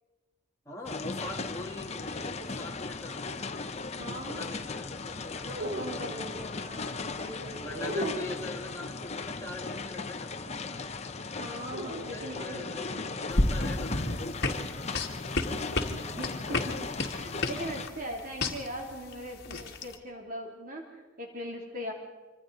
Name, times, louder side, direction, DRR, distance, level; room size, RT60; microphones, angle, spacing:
voice 1, 0.7-3.4 3.9-6.7 7.6-11.0 11.8-15.0, left 1 dB, 15° left, -1 dB, 1.9 m, -43 dB
sound 1, 0.8-17.9, left 4 dB, 35° left, 0.8 m, -37 dB
voice 2, 4.0-4.6 5.6-8.2 11.4-13.3 15.5-21.9, equal, 45° right, 0 dB, 3.0 m, -41 dB
sound 2, 5.4-6.5 7.8-8.6 11.7-12.7, right 1 dB, 70° right, 3.4 m, -38 dB
sound 3, 13.3-19.9, left 2 dB, 55° left, 1.9 m, -31 dB
25.5 x 25.5 x 4.0 m, 1.3 s
head